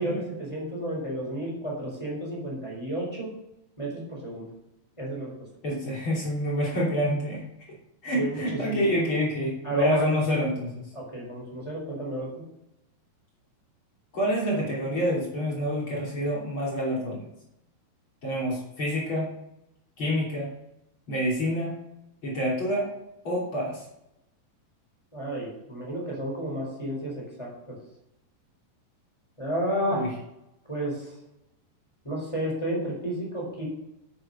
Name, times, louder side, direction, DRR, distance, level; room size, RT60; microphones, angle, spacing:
voice 1, 0.0-3.3 3.8-4.5 5.0-5.3 8.2-8.8 9.6-10.1 10.9-12.3 25.1-27.8 29.4-30.0 30.7-31.1 32.0-33.6, right 1 dB, 5° left, -4 dB, 4.0 m, -31 dB
voice 2, 5.6-7.4 8.0-10.9 14.1-17.2 18.2-19.3 20.0-20.5 21.1-21.7 22.2-22.9 23.2-23.8 29.9-30.1, equal, 35° left, -5 dB, 3.3 m, -27 dB
9.3 x 8.0 x 5.5 m, 0.85 s
omnidirectional pair, 4.8 m